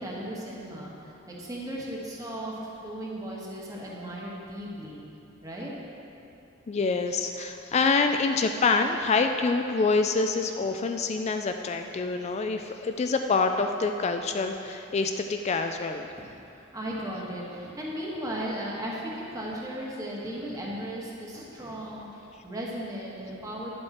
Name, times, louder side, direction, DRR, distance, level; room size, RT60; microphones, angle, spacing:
voice 1, 0.0-5.0 5.4-5.7 16.2-23.7, right 1 dB, 15° right, -4 dB, 1.5 m, -36 dB
voice 2, 6.7-16.1, left 4 dB, 30° left, 6 dB, 0.3 m, -26 dB
10.5 x 7.7 x 4.3 m, 2.9 s
head